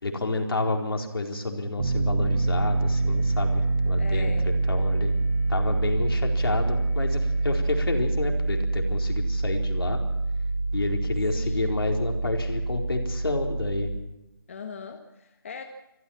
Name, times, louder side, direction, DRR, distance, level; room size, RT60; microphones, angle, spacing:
voice 1, 0.0-4.3 4.7-5.1 5.5-10.0 10.7-13.9, left 2 dB, 75° left, 2 dB, 4.4 m, -29 dB
Piano, 1.8-14.0, right 2 dB, 60° right, 1.5 m, -26 dB
sound 1, 2.2-7.9, equal, 15° right, 4.0 m, -57 dB
voice 2, 4.0-4.5 11.3-11.7 14.5-15.6, left 5 dB, 35° left, 4 dB, 1.5 m, -40 dB
25.5 x 14.5 x 7.3 m, 0.93 s
hypercardioid pair, 175°, 13 cm